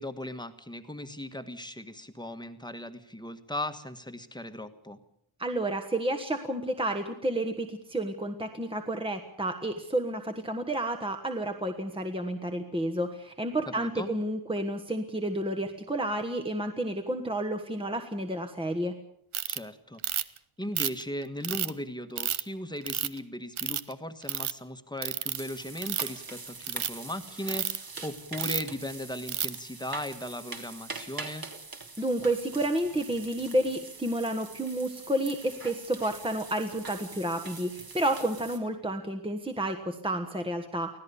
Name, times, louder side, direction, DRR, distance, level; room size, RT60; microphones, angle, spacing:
voice 1, 0.0-5.0 13.7-14.1 19.5-20.3 20.6-31.5, left 1 dB, 10° left, 9 dB, 1.5 m, -38 dB
voice 2, 5.4-18.9 32.0-40.9, right 1 dB, 10° right, 5 dB, 1.4 m, -30 dB
Ratchet pawl, 19.3-19.6 20.0-20.4 20.8-21.7 22.2-22.4 22.9-23.2 23.6-23.9 24.2-24.5 25.0-25.4 25.8-26.2 26.6-26.9 27.5-27.8 28.4-28.7 29.3-29.6, right 9 dB, 85° right, 1.1 m, -30 dB
sound 1, 25.3-38.6, right 4 dB, 45° right, 3.0 m, -44 dB
25.0 x 17.0 x 7.0 m, 0.72 s
wide cardioid pair, 165°, 48 cm